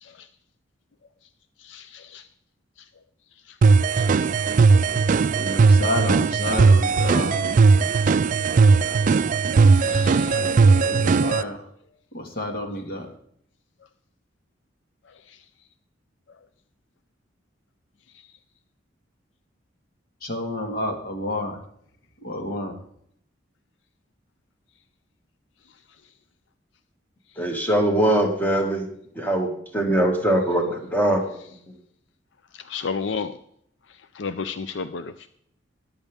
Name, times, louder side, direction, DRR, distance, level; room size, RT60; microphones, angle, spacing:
voice 1, 1.6-2.2 4.0-4.1 9.8-10.5 32.6-33.4 34.1-35.3, left 5 dB, 70° left, 12 dB, 0.5 m, -32 dB
sound 1, 3.6-11.4, right 4 dB, 45° right, 0.3 m, -18 dB
voice 2, 5.3-7.7 9.6-11.6 12.1-13.1 20.2-21.6 22.2-22.7, left 1 dB, 50° left, 4 dB, 1.9 m, -30 dB
voice 3, 27.4-28.9 29.2-31.4, right 1 dB, 10° left, 2 dB, 1.9 m, -22 dB
13.5 x 10.5 x 3.5 m, 0.67 s
head